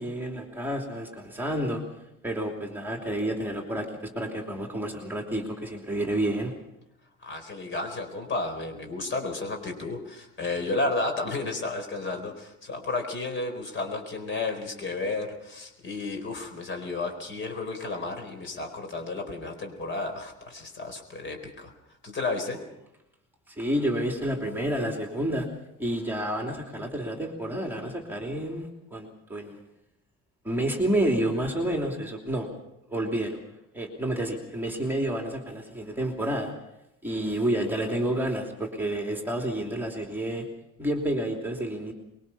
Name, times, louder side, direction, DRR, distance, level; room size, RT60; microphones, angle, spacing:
voice 1, 0.0-1.8 2.2-6.5 23.5-25.5 25.8-29.6 30.4-32.5 32.9-33.4 33.7-36.5 37.0-40.4 40.8-41.9, right 1 dB, 5° right, 1 dB, 3.0 m, -29 dB
voice 2, 7.2-21.7 22.0-22.6, left 3 dB, 40° left, 5 dB, 4.3 m, -32 dB
24.5 x 22.5 x 5.7 m, 0.85 s
cardioid pair, 155°, 31 cm